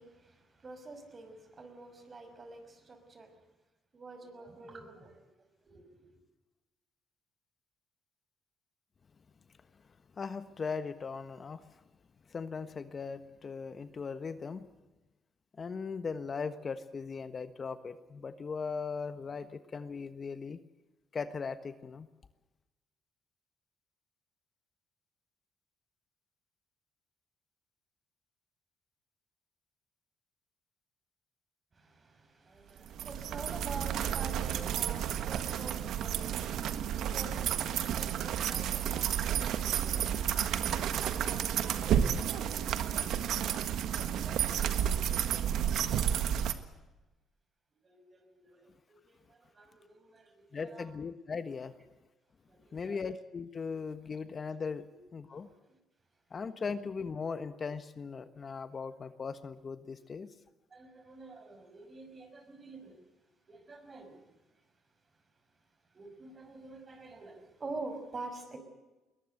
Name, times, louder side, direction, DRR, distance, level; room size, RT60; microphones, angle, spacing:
voice 1, 0.0-3.3 3.9-6.2 31.7-46.1 47.8-50.9 52.5-53.0 55.3-55.5 60.7-63.0 63.5-64.2 65.9-68.6, right 3 dB, 35° right, 7 dB, 5.8 m, -48 dB
voice 2, 10.2-11.6 12.3-14.6 15.6-20.6 21.1-22.1 50.5-51.7 52.7-54.9 55.1-55.5 56.3-60.3, left 5 dB, 40° left, 11 dB, 1.4 m, -38 dB
sound 1, 32.9-46.5, right 9 dB, 75° right, 1.6 m, -31 dB
21.5 x 20.0 x 7.9 m, 1.1 s
cardioid pair, 85°, 0 cm